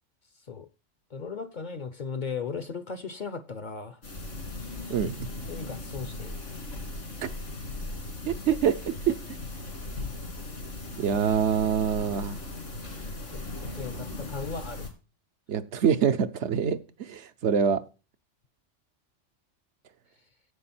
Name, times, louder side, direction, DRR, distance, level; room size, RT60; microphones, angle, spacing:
voice 1, 1.1-4.0 5.5-6.3 13.3-14.9, left 5 dB, 45° left, 0.7 m, -37 dB
sound 1, 4.0-14.9, left 2 dB, 80° left, 2.9 m, -38 dB
voice 2, 4.9-5.3 7.2-7.3 8.3-9.2 11.0-12.4 15.5-17.8, right 8 dB, 70° right, 1.0 m, -25 dB
9.6 x 7.7 x 4.3 m
omnidirectional pair, 1.3 m